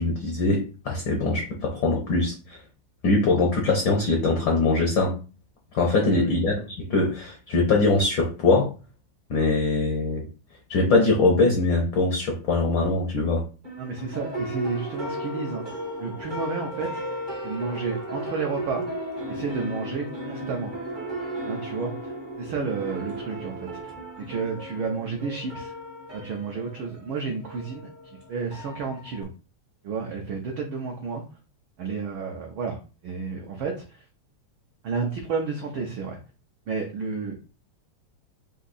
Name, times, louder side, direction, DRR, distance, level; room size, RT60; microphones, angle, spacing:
voice 1, 0.0-2.6 3.0-5.1 5.7-8.7 9.3-10.2 10.7-13.4, left 3 dB, 75° left, 1 dB, 1.1 m, -22 dB
voice 2, 5.9-6.3 13.8-15.6 16.0-17.2 17.4-18.9 19.3-20.7 21.4-23.7 24.2-25.7 26.1-27.9 28.3-29.3 29.8-31.2 31.8-34.0 34.8-36.2 36.7-37.3, right 5 dB, 85° right, 1 dB, 1.1 m, -31 dB
sound 1, 13.6-29.2, right 1 dB, 70° right, 0.4 m, -35 dB
4.8 x 2.7 x 4.0 m, 0.34 s
omnidirectional pair, 3.3 m